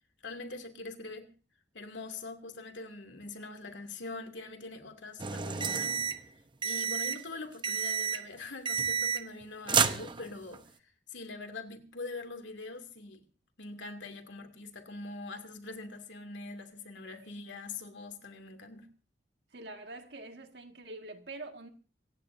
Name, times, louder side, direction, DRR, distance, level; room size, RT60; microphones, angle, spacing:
voice 1, 0.2-1.3 1.7-6.1 6.6-13.2 13.6-18.9, left 3 dB, 85° left, 2.4 m, -43 dB
sound 1, 5.2-6.2 6.6-7.2 7.6-8.3 8.7-9.4 9.7-10.6, right 6 dB, 25° right, 0.7 m, -30 dB
voice 2, 19.5-21.7, right 2 dB, 65° right, 1.8 m, -45 dB
26.5 x 15.5 x 2.6 m
head